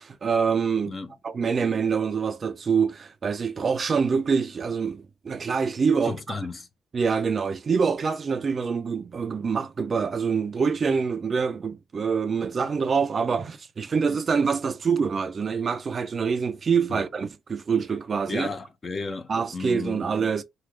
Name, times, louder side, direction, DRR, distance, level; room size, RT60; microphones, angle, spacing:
voice 1, 0.0-1.0 1.2-6.4 6.9-18.5 19.3-20.4, right 5 dB, 40° right, 0.5 m, -25 dB
voice 2, 6.1-6.7 16.9-17.0 18.3-20.1, left 4 dB, 35° left, 0.7 m, -34 dB
3.1 x 2.4 x 3.0 m
cardioid pair, 90°, 0 cm